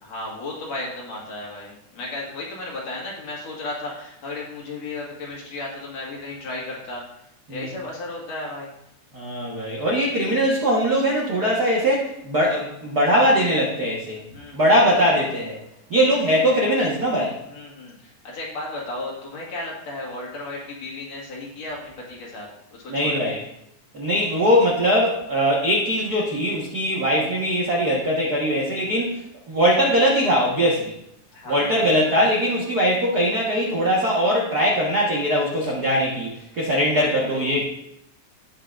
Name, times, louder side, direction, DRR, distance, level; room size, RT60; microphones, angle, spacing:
voice 1, 0.0-7.1 7.5-8.7 14.3-14.7 17.5-23.4 31.3-31.9 36.9-37.6, left 2 dB, 55° left, -3 dB, 2.8 m, -34 dB
voice 2, 9.1-14.2 14.5-15.6 15.9-17.3 22.9-23.4 23.9-29.2 29.5-30.9 31.5-37.6, equal, 50° right, -4 dB, 1.1 m, -21 dB
16.5 x 5.7 x 2.5 m, 0.77 s
omnidirectional pair, 3.8 m